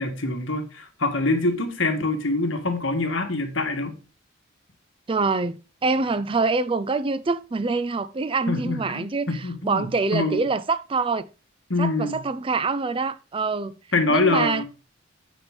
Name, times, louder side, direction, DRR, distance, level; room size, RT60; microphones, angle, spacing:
voice 1, 0.0-3.9 8.5-10.4 11.7-12.2 13.9-14.6, left 2 dB, 70° left, 1.8 m, -25 dB
voice 2, 5.1-11.3 11.8-13.8 14.1-14.6, right 4 dB, 25° right, 0.4 m, -25 dB
6.9 x 6.0 x 5.0 m
head